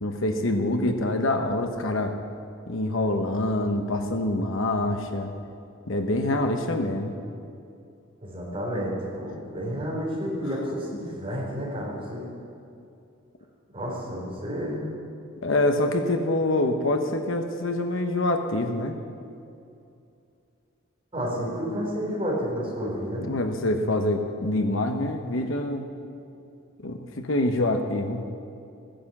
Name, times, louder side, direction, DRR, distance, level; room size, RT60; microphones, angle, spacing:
voice 1, 0.0-2.2 2.7-5.3 5.9-7.2 15.4-19.0 21.4-21.5 23.2-25.9 26.8-28.2, left 1 dB, 60° left, 5 dB, 1.0 m, -25 dB
voice 2, 8.2-12.3 13.7-14.9 21.1-23.3, equal, 25° right, -4 dB, 4.1 m, -30 dB
14.0 x 10.0 x 7.3 m, 2.5 s
head